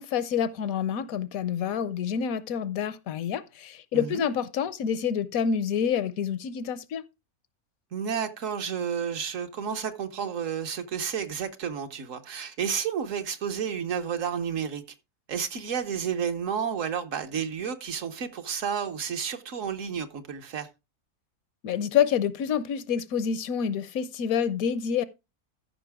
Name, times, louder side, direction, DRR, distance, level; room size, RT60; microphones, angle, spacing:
voice 1, 0.0-7.0 21.6-25.0, left 8 dB, 75° left, 1.0 m, -27 dB
voice 2, 3.9-4.2 7.9-14.8 15.3-20.7, right 7 dB, 60° right, 1.3 m, -31 dB
13.5 x 5.5 x 3.5 m
omnidirectional pair, 1.6 m